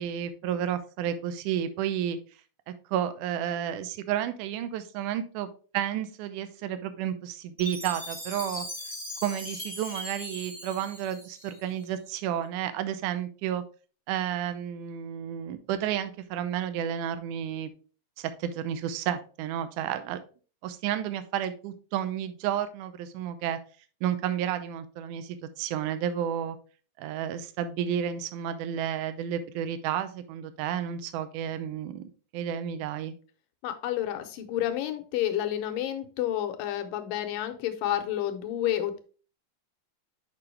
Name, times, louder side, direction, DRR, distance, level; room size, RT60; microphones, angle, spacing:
voice 1, 0.0-2.2 2.7-5.5 5.7-8.7 9.2-13.6 14.1-17.7 18.2-20.2 20.6-23.6 24.0-26.6 27.0-33.1, right 10 dB, 75° right, 1.9 m, -31 dB
Chime, 7.6-11.8, left 1 dB, 5° left, 0.7 m, -39 dB
voice 2, 33.6-39.0, left 12 dB, 75° left, 2.3 m, -30 dB
6.8 x 5.5 x 3.2 m
omnidirectional pair, 4.2 m